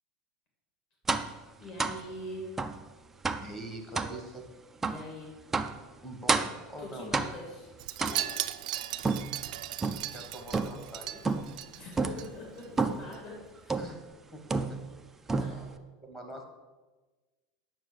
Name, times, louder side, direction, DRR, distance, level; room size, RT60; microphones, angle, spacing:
sound 1, 1.1-1.4 1.8-2.0 2.6-2.8 3.2-3.5 3.9-4.2 4.8-5.0 5.5-5.8 6.3-6.6 7.1-7.5 8.0-8.5 9.0-10.1 10.5-10.9 11.2-11.6 12.0-12.3 12.8-13.1 13.7-14.0 14.5-15.0 15.3-15.8, right 4 dB, 5° right, 0.3 m, -30 dB
voice 1, 1.6-2.6 4.8-5.3 6.8-7.7 8.0-8.3 11.7-13.8 15.3-15.8, left 1 dB, 40° left, -2 dB, 2.3 m, -43 dB
voice 2, 3.3-4.5 6.0-7.1 10.0-11.2 11.7-11.8 13.8-14.0 14.3-14.8 15.3-15.6 16.0-16.4, right 1 dB, 10° left, 2 dB, 1.1 m, -44 dB
Wind chime, 7.8-12.3 12.6-12.9 13.1-13.2, right 14 dB, 70° right, 0.5 m, -37 dB
9.0 x 6.3 x 6.5 m, 1.2 s
supercardioid pair, 180°, 4 cm